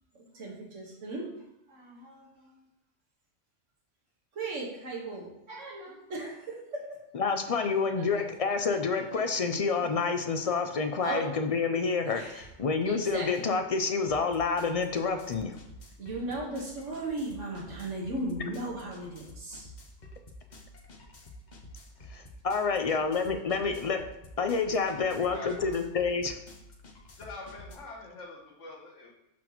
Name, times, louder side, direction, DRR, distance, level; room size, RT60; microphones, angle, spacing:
voice 1, 0.3-1.3 1.7-2.5 4.3-7.0 7.9-8.2 8.7-9.6 11.0-11.3 12.0-12.4 12.9-13.6 16.0-19.7, right 2 dB, 90° right, -3 dB, 1.8 m, -37 dB
voice 2, 7.1-15.6 22.1-24.0 24.4-26.4, left 5 dB, 55° left, 6 dB, 0.3 m, -28 dB
sound 1, 12.1-12.2 12.6-27.8, left 1 dB, 40° left, 0.9 m, -50 dB
voice 3, 25.0-25.7 27.1-29.1, left 2 dB, 85° left, -3 dB, 1.8 m, -45 dB
12.0 x 4.0 x 3.0 m, 0.87 s
omnidirectional pair, 1.2 m